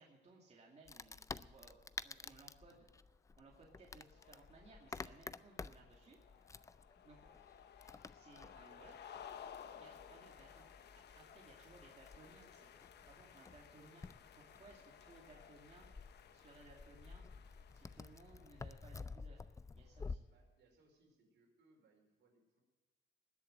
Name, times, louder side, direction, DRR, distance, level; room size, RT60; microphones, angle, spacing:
voice 1, 0.0-2.9 3.4-6.2 7.0-7.2 8.1-9.1 9.8-10.7 11.2-12.7 13.1-14.1 14.3-15.9 16.3-17.3 17.7-19.5 19.7-20.3, right 3 dB, 35° right, -2 dB, 2.5 m, -62 dB
Wood, 0.9-20.2, left 4 dB, 15° left, 0.4 m, -52 dB
sound 1, 3.6-19.2, left 8 dB, 65° left, 1.0 m, -58 dB
voice 2, 20.3-22.6, right 3 dB, 75° right, 1 dB, 4.7 m, -72 dB
20.0 x 7.2 x 7.7 m, 1.3 s
cardioid pair, 135°, 19 cm